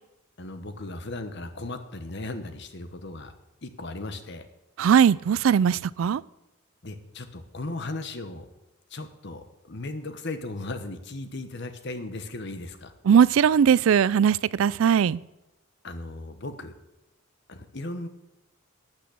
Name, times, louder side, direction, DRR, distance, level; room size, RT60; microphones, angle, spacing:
voice 1, 0.4-3.3 3.6-4.4 6.8-8.4 8.9-12.9 15.8-16.7 17.5-18.1, left 2 dB, 55° left, 9 dB, 1.1 m, -36 dB
voice 2, 4.8-6.2 13.1-15.2, right 7 dB, 70° right, 22 dB, 0.3 m, -19 dB
12.0 x 6.0 x 8.4 m, 0.92 s
head